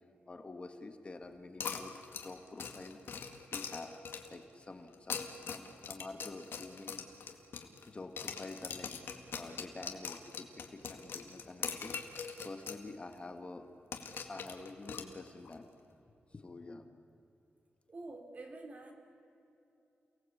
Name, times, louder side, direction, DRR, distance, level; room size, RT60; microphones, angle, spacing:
voice 1, 0.3-1.9 2.2-3.2 3.5-3.9 4.3-7.1 7.8-8.9 9.3-13.7 14.3-15.7 16.3-16.8, left 3 dB, 30° left, 7 dB, 1.6 m, -48 dB
sound 1, 1.6-4.4 4.9-7.9 8.2-12.8 13.1-13.2 13.9-15.5, left 6 dB, 75° left, 2.0 m, -42 dB
voice 2, 17.9-18.9, right 2 dB, 40° right, 4 dB, 3.0 m, -47 dB
29.0 x 18.5 x 8.5 m, 2.8 s
wide cardioid pair, 140°, 4 cm